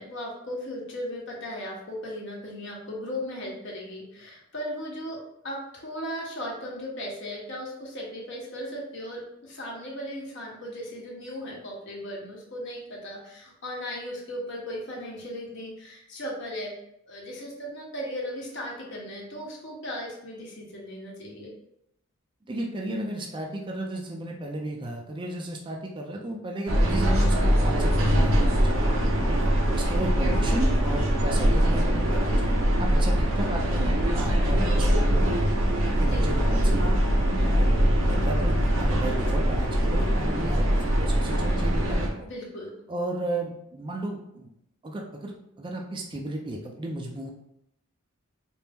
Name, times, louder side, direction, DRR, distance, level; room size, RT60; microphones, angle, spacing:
voice 1, 0.0-16.7 17.1-21.5 36.1-36.3 42.2-42.7, equal, 60° left, -3 dB, 1.1 m, -37 dB
voice 2, 22.5-28.9 29.3-34.9 35.1-35.5 36.0-36.9 37.4-37.7 38.1-42.3 42.9-44.5 44.8-47.3, right 1 dB, 25° right, 0 dB, 0.4 m, -34 dB
sound 1, 26.7-42.1, equal, 70° right, 0.6 m, -22 dB
4.3 x 2.0 x 3.4 m, 0.78 s
head